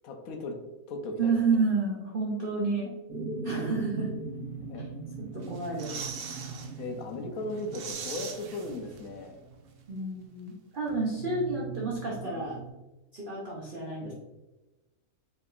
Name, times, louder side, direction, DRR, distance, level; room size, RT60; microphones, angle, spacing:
voice 1, 0.0-0.6 0.9-1.6 4.6-4.9 6.8-9.3, left 2 dB, 75° left, 4 dB, 1.1 m, -37 dB
voice 2, 1.2-2.9 3.4-4.1 5.2-5.9 9.9-12.6 13.1-14.1, right 4 dB, 45° right, -3 dB, 0.8 m, -30 dB
sound 1, 3.1-9.9 10.9-12.7, right 3 dB, 5° right, 1.2 m, -40 dB
sound 2, 5.4-6.7 7.1-7.2 7.5-9.3 9.5-9.6, right 6 dB, 80° right, 0.5 m, -40 dB
5.2 x 3.4 x 2.4 m, 1.1 s
omnidirectional pair, 1.5 m